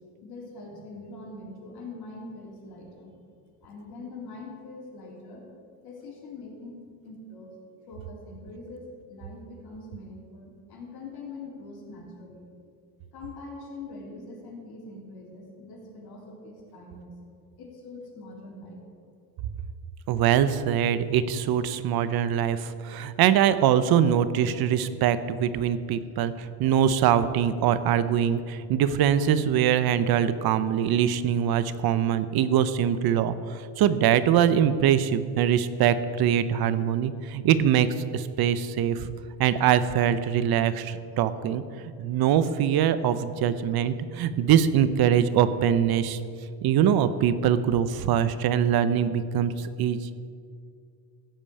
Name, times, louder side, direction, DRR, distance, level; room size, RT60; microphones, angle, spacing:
voice 1, 0.2-3.2 3.6-5.5 5.8-6.8 7.0-7.5 7.9-12.5 13.1-17.1 17.6-18.8, left 2 dB, 55° left, -2 dB, 3.6 m, -43 dB
voice 2, 20.1-37.9 38.1-39.1 39.4-41.6 42.0-46.2 46.6-50.1, right 9 dB, 55° right, 14 dB, 0.8 m, -23 dB
14.5 x 5.2 x 8.5 m, 2.2 s
cardioid pair, 110°, 44 cm